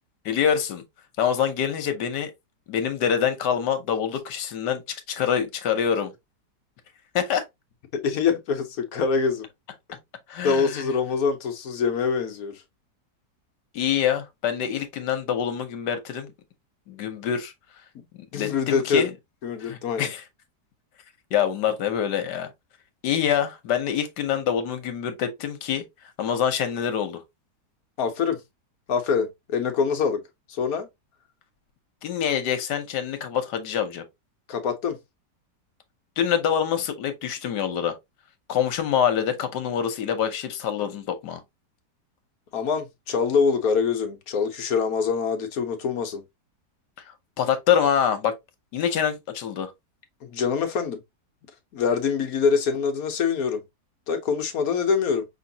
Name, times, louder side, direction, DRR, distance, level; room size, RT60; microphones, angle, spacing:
voice 1, 0.2-0.8 1.2-2.3 2.7-6.1 7.1-7.4 10.3-10.8 13.7-16.3 16.9-17.5 18.3-19.1 19.6-20.2 21.3-22.5 23.0-25.8 26.2-27.2 32.0-34.0 36.2-38.0 38.5-41.4 47.4-48.3 48.7-49.7, left 8 dB, 80° left, 1.4 m, -25 dB
voice 2, 7.9-9.5 10.4-12.6 18.3-19.1 19.4-20.1 28.0-28.4 28.9-30.2 30.5-30.9 34.5-35.0 42.5-46.2 50.2-51.0 51.7-53.6 54.1-55.3, left 5 dB, 65° left, 1.3 m, -24 dB
5.2 x 3.1 x 2.7 m
omnidirectional pair, 1.8 m